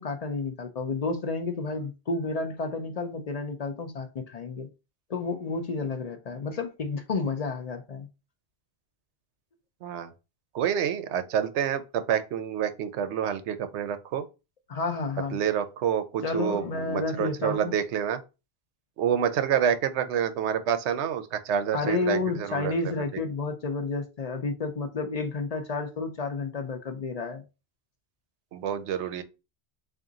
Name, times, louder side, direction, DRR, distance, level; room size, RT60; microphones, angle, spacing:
voice 1, 0.0-4.7 5.1-8.1 14.7-15.4 16.2-17.7 21.7-27.4, left 3 dB, 50° left, 0.5 m, -31 dB
voice 2, 10.5-14.2 15.3-18.2 19.0-23.0 28.5-29.2, right 8 dB, 85° right, 0.9 m, -28 dB
3.6 x 2.5 x 3.8 m
omnidirectional pair, 1.1 m